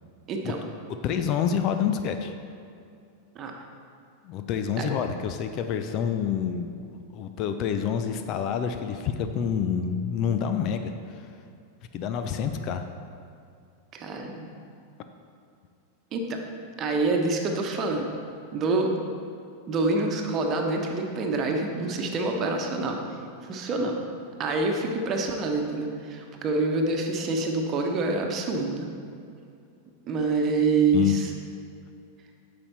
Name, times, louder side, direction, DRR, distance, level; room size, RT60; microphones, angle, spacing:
voice 1, 0.3-0.6 3.3-3.5 4.8-4.9 13.9-14.5 16.1-16.4 16.8-18.1 18.5-18.9 19.7-23.0 23.5-24.0 24.4-28.9 30.0-31.3, right 3 dB, 30° right, 3 dB, 1.1 m, -26 dB
voice 2, 1.0-2.3 4.2-11.3 11.9-12.8 30.9-31.1, left 8 dB, 40° left, 8 dB, 0.5 m, -28 dB
9.9 x 6.9 x 4.2 m, 2.5 s
figure-of-eight pair, 90°, 0 cm